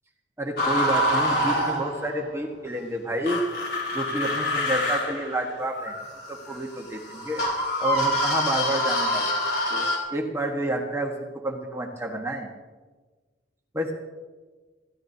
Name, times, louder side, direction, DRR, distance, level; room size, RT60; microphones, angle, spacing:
voice 1, 0.4-3.4 3.9-5.9 6.3-7.4 7.8-9.4 9.7-12.5 13.7-13.9, right 1 dB, 15° right, 1 dB, 1.3 m, -29 dB
sound 1, 0.6-2.2 3.2-10.0, left 1 dB, 55° left, 4.1 m, -26 dB
25.0 x 15.0 x 2.8 m, 1.4 s
head